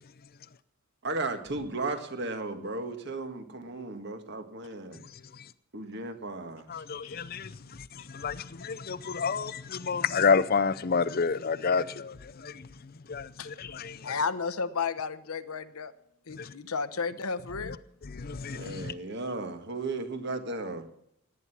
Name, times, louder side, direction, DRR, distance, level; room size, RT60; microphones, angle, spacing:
voice 1, 1.0-5.0 5.7-6.8 18.5-20.9, right 2 dB, 50° right, 1.7 m, -35 dB
voice 2, 6.7-7.6 7.9-12.7 13.1-14.1 16.4-16.5 18.1-18.9, left 5 dB, 45° left, 0.6 m, -29 dB
voice 3, 14.0-15.9 16.3-17.8, left 5 dB, 80° left, 1.0 m, -33 dB
18.0 x 9.9 x 5.9 m
head